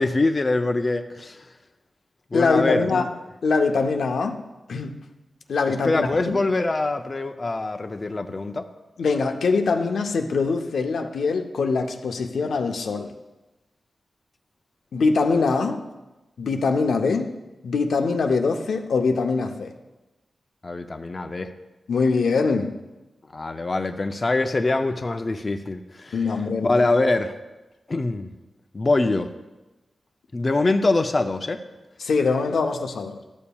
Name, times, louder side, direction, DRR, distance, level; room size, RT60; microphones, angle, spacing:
voice 1, 0.0-1.5 2.3-3.1 5.7-8.7 20.6-21.5 23.3-26.3 26.6-27.4 27.9-28.3 28.7-29.3 30.3-31.6, left 2 dB, 35° left, 6 dB, 0.4 m, -24 dB
voice 2, 2.3-3.1 3.4-4.4 4.7-5.0 5.5-6.4 9.0-13.1 14.9-15.8 16.4-17.4 17.6-19.7 21.9-22.8 26.1-26.9 32.0-33.2, left 4 dB, 85° left, 5 dB, 0.6 m, -23 dB
12.5 x 6.9 x 2.2 m, 1.1 s
wide cardioid pair, 80°, 0 cm